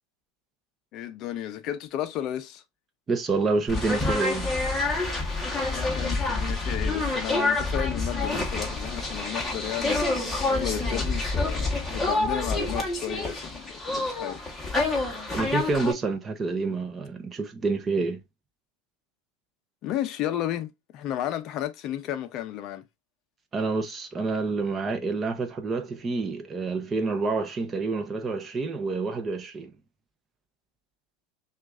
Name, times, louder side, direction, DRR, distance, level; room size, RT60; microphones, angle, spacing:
voice 1, 0.9-2.6 5.7-10.1 10.5-14.4 19.8-22.8, left 11 dB, 40° left, 0.6 m, -33 dB
voice 2, 3.1-4.5 15.3-18.2 23.5-29.7, right 3 dB, 20° right, 0.7 m, -28 dB
sound 1, 3.7-15.9, left 2 dB, 5° left, 1.2 m, -27 dB
6.1 x 2.5 x 2.5 m
supercardioid pair, 145°, 0 cm